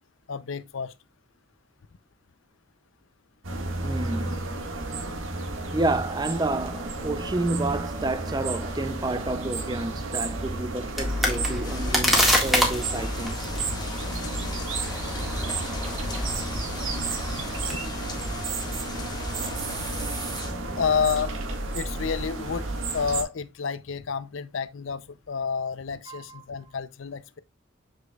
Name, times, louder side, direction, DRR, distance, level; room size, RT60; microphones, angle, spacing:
voice 1, 0.3-0.9 17.4-17.8 20.8-21.3 21.7-22.7 22.9-27.4, left 6 dB, 75° left, 0.6 m, -29 dB
sound 1, 3.4-23.2, right 3 dB, 75° right, 1.7 m, -32 dB
voice 2, 3.8-4.5 5.7-13.5 26.1-26.4, right 2 dB, 20° right, 0.5 m, -30 dB
sound 2, 11.0-23.0, left 1 dB, ahead, 1.7 m, -30 dB
sound 3, 11.6-20.5, left 2 dB, 20° left, 1.2 m, -37 dB
7.0 x 6.5 x 2.3 m
head